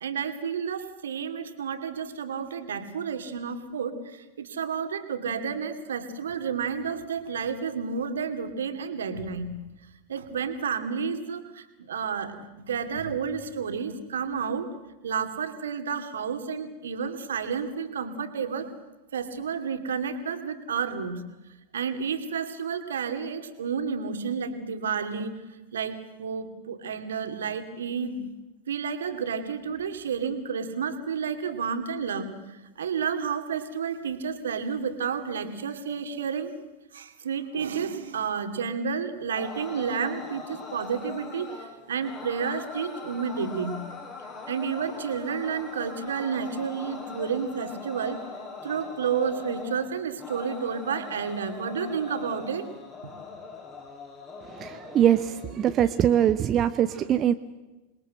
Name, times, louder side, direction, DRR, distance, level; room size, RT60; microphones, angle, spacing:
voice 1, 0.0-9.5 10.1-14.7 15.0-18.7 19.1-21.2 21.7-25.4 25.7-28.2 28.7-32.4 32.8-36.5 36.9-43.8 44.5-48.2 48.6-52.7 53.0-53.1 54.6-54.7, right 6 dB, 65° right, 8 dB, 2.6 m, -31 dB
sound 1, 39.3-55.4, left 4 dB, 30° left, 7.8 m, -41 dB
voice 2, 54.6-57.3, right 10 dB, 30° right, 10 dB, 0.8 m, -22 dB
27.5 x 21.5 x 7.9 m, 1.1 s
figure-of-eight pair, 90°, 0 cm